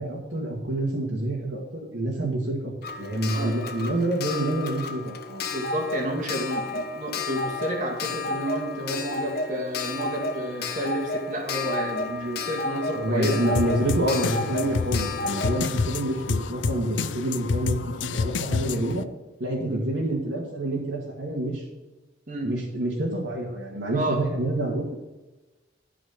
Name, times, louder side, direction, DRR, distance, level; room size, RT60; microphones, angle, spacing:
voice 1, 0.0-2.7 3.0-5.4 12.9-19.1 19.4-21.6 22.4-25.0, right 1 dB, 80° right, -5 dB, 2.2 m, -27 dB
Clock, 2.8-17.4 18.6-18.7 18.9-19.0, left 3 dB, 55° left, 1.1 m, -32 dB
voice 2, 5.5-13.5 19.6-19.8 22.3-22.5 23.9-24.2, right 1 dB, 45° right, 1 dB, 2.2 m, -30 dB
sound 1, 13.5-19.0, left 4 dB, 90° left, 0.5 m, -28 dB
14.0 x 5.0 x 5.9 m, 1.1 s
head